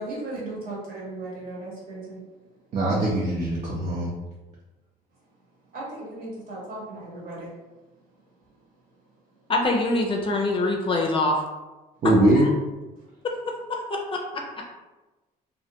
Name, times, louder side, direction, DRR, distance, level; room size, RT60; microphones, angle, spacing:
voice 1, 0.0-2.2 5.7-7.5, right 2 dB, 60° right, -5 dB, 1.2 m, -36 dB
voice 2, 2.7-4.1 12.0-12.4, right 1 dB, 40° right, -5 dB, 0.5 m, -21 dB
voice 3, 9.5-11.4 12.4-12.5 13.7-14.4, left 2 dB, 30° left, 1 dB, 0.4 m, -24 dB
2.6 x 2.1 x 2.8 m, 1.1 s
cardioid pair, 110°, 17 cm